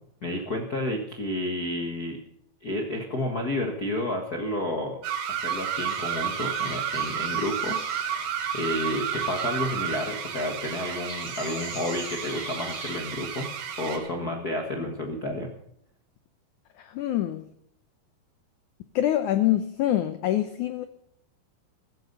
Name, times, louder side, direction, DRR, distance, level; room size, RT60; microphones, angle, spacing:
voice 1, 0.2-2.2 2.6-5.0 5.4-13.5 13.8-15.5, left 1 dB, 60° left, 1 dB, 0.9 m, -31 dB
sound 1, 5.0-14.1, right 8 dB, 70° right, 3.2 m, -31 dB
sound 2, 5.5-14.0, left 1 dB, 25° left, 7.5 m, -43 dB
voice 2, 16.8-17.5 19.0-20.8, left 12 dB, 80° left, 10 dB, 1.8 m, -25 dB
15.5 x 14.5 x 5.4 m, 0.70 s
omnidirectional pair, 4.5 m